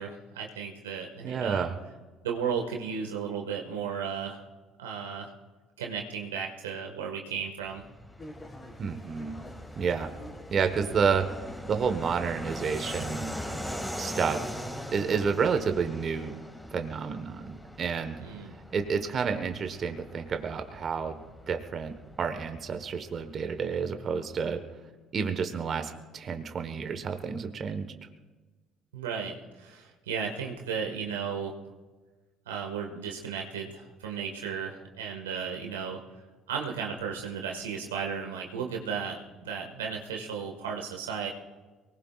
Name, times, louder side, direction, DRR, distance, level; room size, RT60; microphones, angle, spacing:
voice 1, 0.0-1.7 2.2-4.4 4.8-5.3 5.8-7.8 18.2-18.5 28.9-31.5 32.4-36.0 36.5-41.3, right 6 dB, 90° right, 1 dB, 1.8 m, -34 dB
voice 2, 1.2-1.8 8.8-9.4 9.8-10.1 10.5-11.3 11.7-13.3 14.0-14.4 14.9-16.4 16.7-18.2 18.7-21.2 21.5-24.6 25.1-27.9, right 6 dB, 50° right, 7 dB, 1.4 m, -30 dB
Fixed-wing aircraft airplane, 7.6-23.8, equal, 5° left, 2.3 m, -41 dB
sound 1, 8.2-13.8, left 1 dB, 30° left, 3.7 m, -49 dB
23.5 x 19.5 x 2.5 m, 1.3 s
hypercardioid pair, 60°, 0 cm